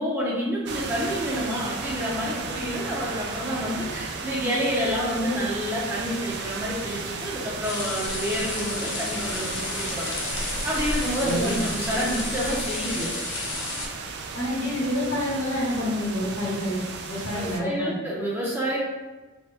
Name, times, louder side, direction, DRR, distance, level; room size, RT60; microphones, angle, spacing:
voice 1, 0.0-10.2 10.6-13.1 17.3-18.8, equal, 10° right, -5 dB, 0.6 m, -28 dB
sound 1, 0.7-17.6, right 4 dB, 50° right, 0.3 m, -34 dB
sound 2, 7.6-13.9, left 2 dB, 55° left, 0.6 m, -32 dB
voice 2, 11.2-11.5 14.3-17.9, left 1 dB, 75° left, -6 dB, 1.5 m, -28 dB
3.4 x 2.2 x 4.2 m, 1.2 s
head